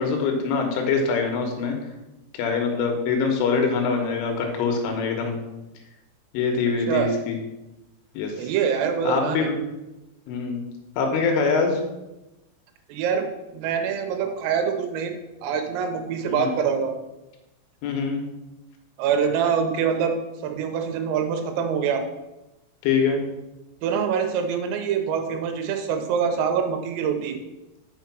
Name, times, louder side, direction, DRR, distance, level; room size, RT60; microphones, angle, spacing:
voice 1, 0.0-1.8 2.4-5.4 6.3-7.4 8.2-8.5 9.1-9.6 10.3-10.6 11.0-11.8 16.3-16.5 17.8-18.2 22.8-23.2, left 5 dB, 75° left, 3 dB, 3.5 m, -24 dB
voice 2, 8.4-9.5 12.9-13.3 13.5-15.1 15.4-16.9 19.0-20.2 20.4-22.0 23.8-27.4, right 7 dB, 85° right, 5 dB, 3.6 m, -25 dB
6.4 x 6.2 x 5.9 m, 0.99 s
omnidirectional pair, 5.9 m